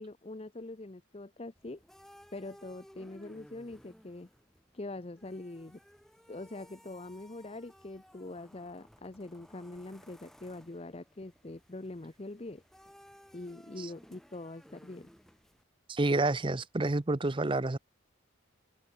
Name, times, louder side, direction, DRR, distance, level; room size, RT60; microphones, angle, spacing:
voice 1, 0.0-1.8 2.3-4.3 4.7-5.8 6.3-12.6 13.3-15.1, left 2 dB, 30° left, 0.7 m, -43 dB
sound 1, 1.6-15.6, equal, ahead, 3.8 m, -58 dB
voice 2, 15.9-17.8, right 2 dB, 25° right, 0.6 m, -29 dB
open air
head